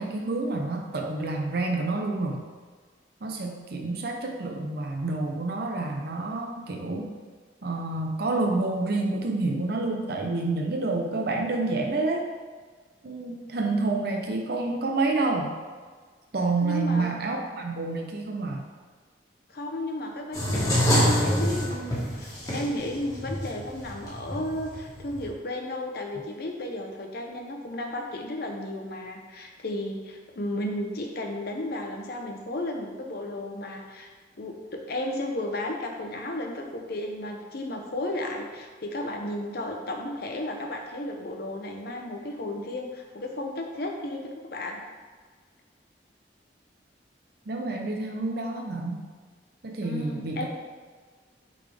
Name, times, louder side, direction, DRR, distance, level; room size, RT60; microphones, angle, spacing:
voice 1, 0.0-2.4 3.2-7.1 7.6-12.2 13.0-15.5 16.3-18.6 47.5-49.1 49.6-50.5, right 3 dB, 60° right, 1 dB, 0.7 m, -28 dB
voice 2, 16.6-17.1 19.5-34.1 34.3-44.8 49.8-50.5, left 1 dB, 60° left, 2 dB, 0.9 m, -34 dB
sound 1, 20.3-25.3, equal, 20° left, 1.6 m, -26 dB
8.4 x 3.9 x 3.4 m, 1.5 s
head